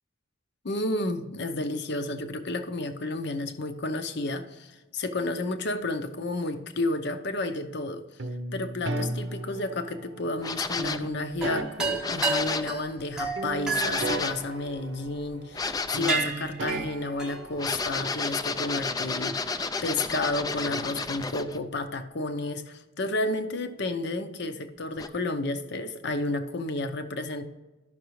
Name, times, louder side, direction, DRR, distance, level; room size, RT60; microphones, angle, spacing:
voice 1, 0.6-8.0 8.5-27.5, left 2 dB, 60° left, 8 dB, 0.7 m, -31 dB
sound 1, 8.2-10.2 10.8-13.1 13.4-15.7 15.9-18.0, right 2 dB, 65° right, 0.7 m, -36 dB
sound 2, 10.4-11.1 12.0-12.8 13.7-14.5 15.5-16.3 17.5-21.6 25.0-25.1, left 4 dB, 20° left, 0.3 m, -31 dB
sound 3, 11.3-15.1 15.6-15.8 16.1-18.0, right 3 dB, 5° right, 0.8 m, -31 dB
13.5 x 5.9 x 3.1 m, 1.1 s
head